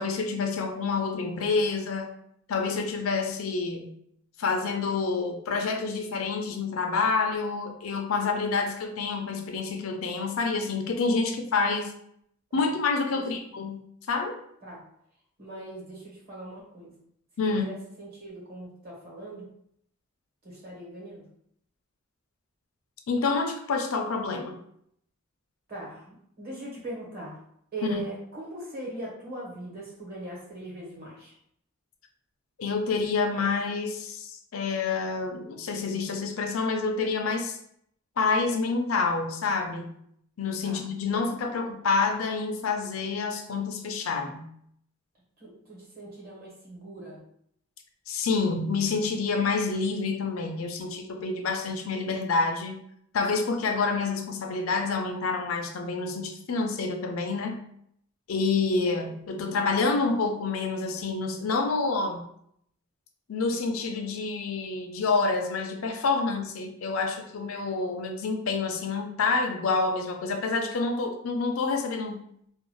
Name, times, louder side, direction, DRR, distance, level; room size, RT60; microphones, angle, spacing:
voice 1, 0.0-2.1 2.5-3.9 4.4-11.9 12.5-13.8 14.1-14.4 17.4-17.7 23.1-24.6 32.6-37.6 38.2-39.9 40.4-44.5 48.1-52.8 53.1-57.5 58.3-62.2 63.3-72.2, left 4 dB, 80° left, 4 dB, 0.5 m, -28 dB
voice 2, 15.4-16.9 17.5-19.5 20.4-21.3 25.7-27.4 27.7-31.3 40.6-40.8 45.4-47.2 58.6-59.1, right 2 dB, 45° right, -4 dB, 1.1 m, -40 dB
2.5 x 2.2 x 3.1 m, 0.70 s
head